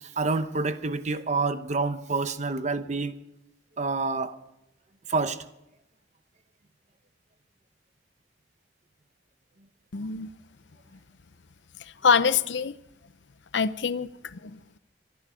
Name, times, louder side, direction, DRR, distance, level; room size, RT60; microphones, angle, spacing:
voice 1, 0.2-3.1 3.8-4.4 5.1-5.4, right 3 dB, 40° right, 0.9 m, -27 dB
voice 2, 9.9-10.3 11.8-12.7 13.5-14.6, left 6 dB, 85° left, 0.6 m, -25 dB
23.5 x 12.0 x 5.1 m
head